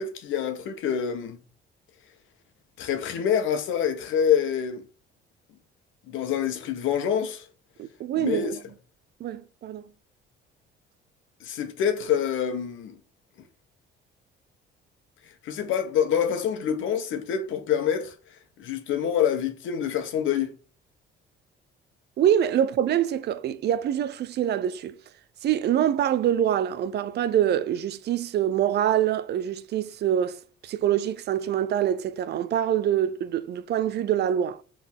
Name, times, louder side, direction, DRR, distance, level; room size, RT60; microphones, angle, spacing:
voice 1, 0.0-1.4 2.8-4.8 6.1-7.5 8.2-8.5 11.4-13.0 15.4-18.1 18.6-20.5, left 8 dB, 75° left, 1.4 m, -26 dB
voice 2, 7.8-8.6 9.2-9.8 22.2-24.9 25.4-34.6, right 10 dB, 55° right, 0.6 m, -25 dB
6.1 x 3.8 x 6.2 m
cardioid pair, 150°, 20 cm